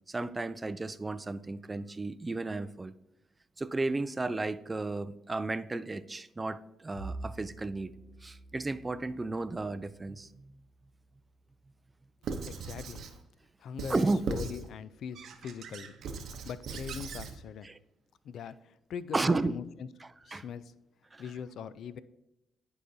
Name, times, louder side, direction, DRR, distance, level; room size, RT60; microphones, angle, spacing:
voice 1, 0.1-2.9 3.6-7.9 8.2-10.5 13.9-14.2 17.6-17.8 19.1-19.5 20.0-20.4 21.1-21.2, right 2 dB, 20° right, 0.3 m, -33 dB
Bowed string instrument, 6.9-11.5, right 2 dB, 40° left, 2.2 m, -48 dB
Squeak / Writing, 12.2-13.2 13.8-14.7 15.1-17.4, right 4 dB, 65° right, 0.7 m, -39 dB
voice 2, 12.5-13.0 13.6-14.0 14.3-16.0 16.4-17.7 18.2-19.9 20.2-20.7 21.2-22.0, left 7 dB, 70° left, 0.3 m, -41 dB
10.0 x 4.9 x 2.7 m
cardioid pair, 90°, 0 cm